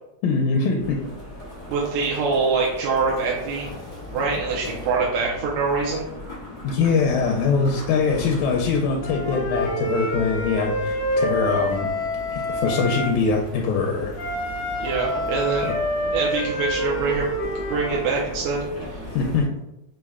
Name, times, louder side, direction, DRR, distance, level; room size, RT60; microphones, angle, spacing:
voice 1, 0.2-1.0 6.6-11.9 12.3-14.1 15.6-15.7 19.2-19.5, left 4 dB, 85° left, 1 dB, 1.9 m, -22 dB
sound 1, 0.8-19.5, left 2 dB, 40° left, 0.6 m, -38 dB
voice 2, 1.7-3.7 4.1-6.1 14.8-15.7 16.1-17.3 17.5-18.6, right 4 dB, 80° right, -3 dB, 1.8 m, -24 dB
Wind instrument woodwind instrument, 9.0-13.1 14.2-18.1, equal, 60° left, 1.5 m, -27 dB
5.3 x 2.1 x 3.5 m, 0.89 s
omnidirectional pair, 3.3 m